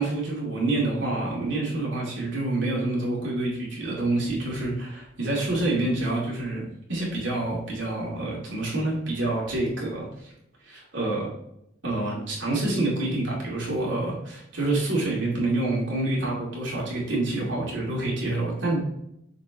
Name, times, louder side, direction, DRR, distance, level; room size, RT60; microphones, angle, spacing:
voice 1, 0.0-10.1 10.6-11.3 11.8-18.8, right 2 dB, 75° right, -4 dB, 2.5 m, -27 dB
6.5 x 4.2 x 3.5 m, 0.78 s
head